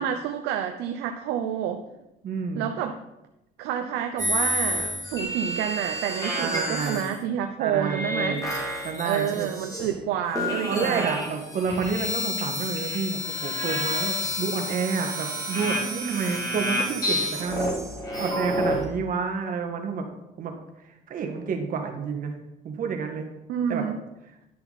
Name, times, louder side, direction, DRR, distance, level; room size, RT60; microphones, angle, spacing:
voice 1, 0.0-1.8 2.6-3.0 3.6-8.4 9.0-11.1 23.5-24.0, right 9 dB, 90° right, 6 dB, 0.6 m, -29 dB
voice 2, 2.2-2.7 6.3-7.0 7.6-8.5 8.8-9.5 10.7-17.8 18.2-20.1 20.4-20.6 20.8-22.4 22.6-23.3 23.7-23.8, right 5 dB, 55° right, 4 dB, 1.6 m, -29 dB
sound 1, 4.2-7.2 7.8-10.1 10.3-18.8, left 1 dB, 20° left, 2.6 m, -29 dB
10.5 x 6.9 x 4.1 m, 0.91 s
cardioid pair, 110°, 17 cm